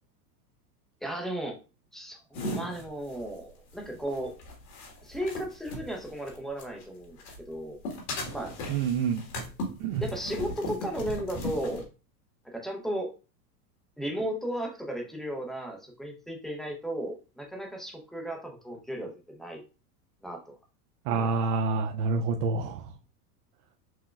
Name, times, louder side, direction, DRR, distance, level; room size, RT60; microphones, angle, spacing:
voice 1, 1.0-1.6 1.9-4.3 5.0-7.2 7.5-7.8 8.3-8.5 10.0-11.8 12.4-13.1 14.0-19.6 20.2-20.5 21.1-21.4, right 1 dB, ahead, 1 dB, 0.5 m, -35 dB
sound 1, 2.3-6.8 7.2-11.8, left 1 dB, 60° left, 1.6 m, -38 dB
voice 2, 8.7-9.2 9.8-10.0 21.1-22.8, right 4 dB, 65° right, 4 dB, 0.6 m, -27 dB
6.0 x 2.1 x 2.3 m, 0.31 s
supercardioid pair, 120°, 48 cm